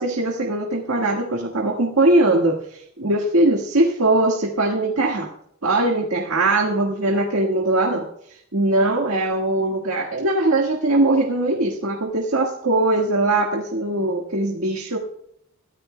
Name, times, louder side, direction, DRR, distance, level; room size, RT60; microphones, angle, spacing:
voice 1, 0.0-5.3 5.6-15.0, right 2 dB, 90° right, 0 dB, 1.6 m, -21 dB
22.0 x 14.0 x 2.2 m, 0.70 s
head